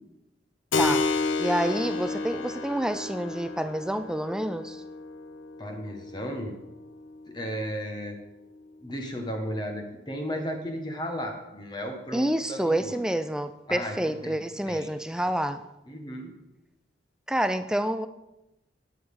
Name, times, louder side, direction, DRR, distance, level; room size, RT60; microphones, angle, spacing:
Keyboard (musical), 0.7-8.9, left 3 dB, 90° left, 0.8 m, -32 dB
voice 1, 1.4-4.8 12.1-15.6 17.3-18.1, right 1 dB, 5° right, 10 dB, 0.3 m, -28 dB
voice 2, 5.6-6.5 7.3-8.2 8.8-13.0 13.7-14.4 14.6-14.9 15.9-16.3, equal, 25° left, 3 dB, 1.3 m, -34 dB
12.5 x 8.7 x 3.7 m, 0.94 s
head